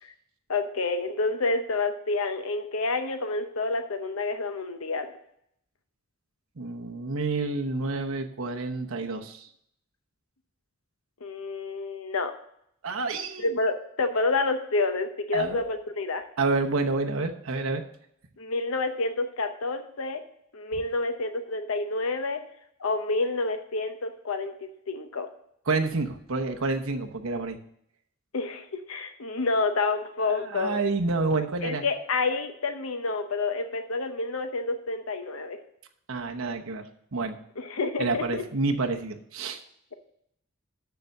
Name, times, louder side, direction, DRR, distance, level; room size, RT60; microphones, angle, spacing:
voice 1, 0.5-5.1 11.2-12.3 13.4-16.3 18.4-20.2 20.5-22.4 22.8-25.3 28.3-30.8 31.6-35.6 37.6-38.4, left 3 dB, 85° left, 8 dB, 0.8 m, -28 dB
voice 2, 6.6-9.5 12.8-13.6 15.3-15.7 16.4-17.8 25.7-27.6 30.2-31.8 36.1-36.9 37.1-37.4 38.0-39.6, right 3 dB, 75° right, 4 dB, 0.9 m, -29 dB
6.9 x 6.6 x 6.5 m, 0.71 s
head